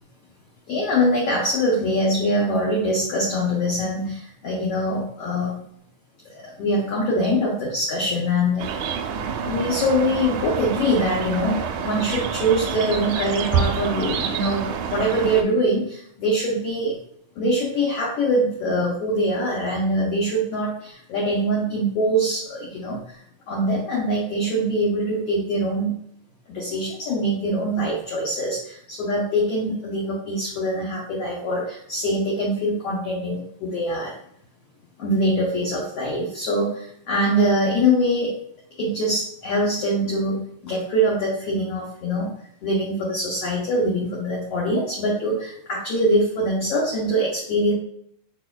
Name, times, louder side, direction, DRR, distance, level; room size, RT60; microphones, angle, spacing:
voice 1, 0.7-5.5 6.4-8.7 9.4-16.9 17.4-23.0 23.5-26.0 26.5-34.1 35.0-38.3 38.8-42.3 42.6-47.7, equal, 70° left, -4 dB, 1.5 m, -23 dB
sound 1, 8.6-15.4, right 6 dB, 80° right, 1.9 m, -27 dB
4.7 x 4.7 x 2.2 m, 0.69 s
omnidirectional pair, 3.9 m